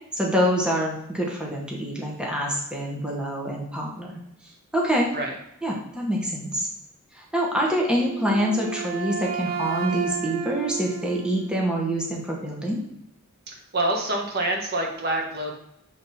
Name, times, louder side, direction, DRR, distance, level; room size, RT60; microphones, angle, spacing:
voice 1, 0.1-4.2 4.7-5.1 5.6-6.7 7.1-12.8, equal, 5° right, -2 dB, 1.0 m, -26 dB
Wind instrument woodwind instrument, 8.0-11.9, right 7 dB, 65° right, 1.2 m, -33 dB
voice 2, 13.7-15.5, right 1 dB, 50° right, 1 dB, 1.3 m, -26 dB
7.3 x 3.4 x 4.1 m, 0.80 s
head